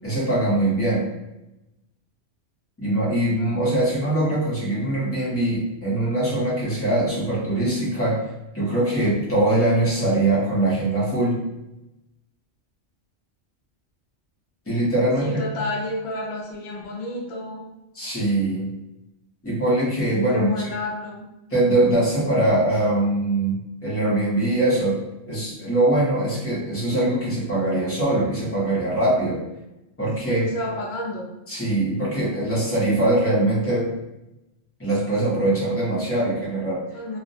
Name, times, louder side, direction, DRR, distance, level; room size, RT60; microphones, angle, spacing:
voice 1, 0.0-1.1 2.8-8.2 8.5-11.4 14.7-15.5 17.9-18.7 19.4-20.5 21.5-25.0 25.3-29.4 30.0-30.4 31.5-33.9 34.8-36.8, right 1 dB, 15° left, -7 dB, 0.6 m, -22 dB
voice 2, 15.2-17.6 20.3-21.3 30.2-31.3 36.9-37.2, left 1 dB, 55° left, -2 dB, 0.5 m, -30 dB
2.5 x 2.1 x 2.6 m, 0.93 s
omnidirectional pair, 1.3 m